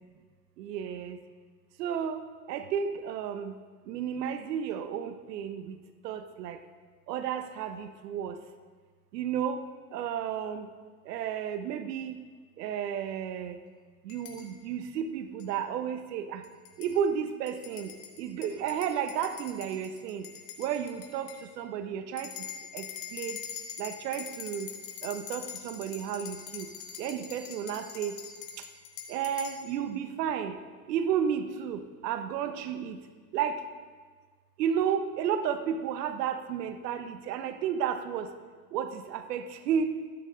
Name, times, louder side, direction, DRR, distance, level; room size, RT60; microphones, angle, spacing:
voice 1, 0.6-1.2 1.8-2.2 2.5-3.6 3.9-6.6 7.1-8.4 9.1-9.6 9.9-10.7 11.0-12.2 12.6-13.6 14.0-16.4 16.8-20.3 20.6-22.3 22.7-23.4 23.8-24.7 25.0-26.7 27.0-28.2 28.6-28.7 29.1-30.6 30.9-33.0 33.3-33.6 34.6-38.3 38.7-40.0, right 8 dB, 75° right, 10 dB, 1.1 m, -32 dB
sound 1, 14.1-14.4 15.4-15.5 16.4-16.9 17.5-21.4 22.2-29.6, left 9 dB, 60° left, 2.7 m, -43 dB
22.5 x 9.1 x 3.8 m, 1.5 s
hypercardioid pair, 85°, 48 cm